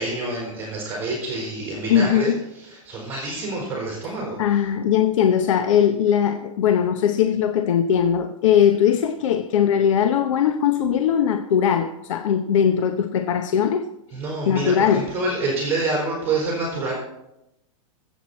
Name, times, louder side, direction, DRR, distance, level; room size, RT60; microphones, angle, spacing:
voice 1, 0.0-4.4 14.1-16.9, right 2 dB, 10° right, 3.8 m, -27 dB
voice 2, 1.9-2.4 4.4-13.9 14.5-15.1, left 8 dB, 65° left, 0.8 m, -20 dB
21.5 x 8.2 x 4.2 m
supercardioid pair, 170°, 18 cm